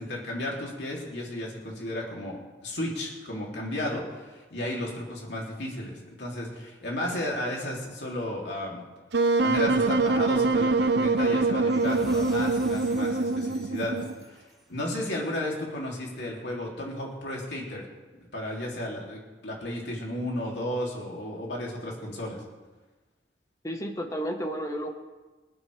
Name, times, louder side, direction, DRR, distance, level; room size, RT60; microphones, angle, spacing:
voice 1, 0.0-2.4 2.6-8.8 9.4-14.0 14.3-14.4 14.7-17.8 18.3-22.4, left 1 dB, 75° left, -2 dB, 3.4 m, -33 dB
Wind instrument woodwind instrument, 9.1-14.2, right 3 dB, 70° right, 0.7 m, -24 dB
sound 1, 11.7-15.0, equal, ahead, 2.9 m, -48 dB
voice 2, 23.6-24.9, equal, 20° left, 3 dB, 1.5 m, -32 dB
25.5 x 8.8 x 3.6 m, 1.2 s
head